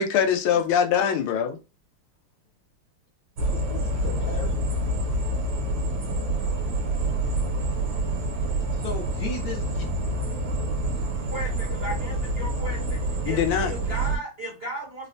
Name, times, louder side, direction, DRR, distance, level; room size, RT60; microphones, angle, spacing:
voice 1, 0.0-1.6 13.3-13.7, left 7 dB, 90° left, 1.5 m, -22 dB
voice 2, 3.4-4.6 8.7-9.8, left 4 dB, 65° left, 1.1 m, -36 dB
sound 1, 3.4-14.2, right 1 dB, 70° right, 1.5 m, -27 dB
voice 3, 11.3-13.0 13.2-15.1, right 1 dB, 50° right, 0.7 m, -35 dB
3.9 x 2.1 x 2.5 m
omnidirectional pair, 2.3 m